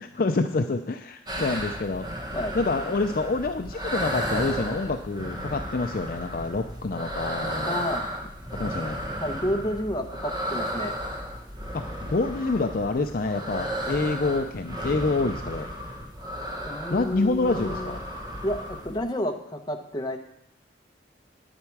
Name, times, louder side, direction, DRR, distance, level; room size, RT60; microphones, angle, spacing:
voice 1, 0.0-2.1 2.5-7.8 8.6-9.0 11.7-15.7 16.9-18.0, left 3 dB, 50° left, 6 dB, 0.5 m, -27 dB
sound 1, 1.3-19.0, equal, 25° right, 1.5 m, -34 dB
voice 2, 7.7-8.1 9.2-10.9 16.6-18.0 18.4-20.2, equal, 20° left, 3 dB, 1.0 m, -30 dB
10.0 x 8.9 x 4.7 m, 0.82 s
head